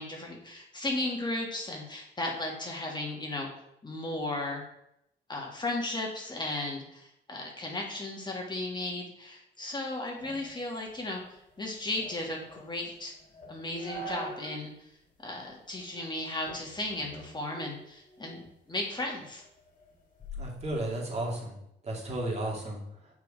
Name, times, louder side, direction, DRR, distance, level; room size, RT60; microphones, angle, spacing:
voice 1, 0.0-3.5 3.8-4.6 5.3-13.1 13.5-14.9 15.2-18.4 18.7-19.4, left 2 dB, 20° left, -1 dB, 1.7 m, -35 dB
sound 1, 10.2-14.7 15.0-15.1 15.8-16.1 16.5-18.5 18.9-21.4, right 1 dB, 40° left, 2.3 m, -46 dB
voice 2, 20.4-21.6 21.8-22.8, right 1 dB, 35° right, -2 dB, 2.6 m, -33 dB
6.6 x 4.9 x 5.0 m, 0.78 s
cardioid pair, 90°, 20 cm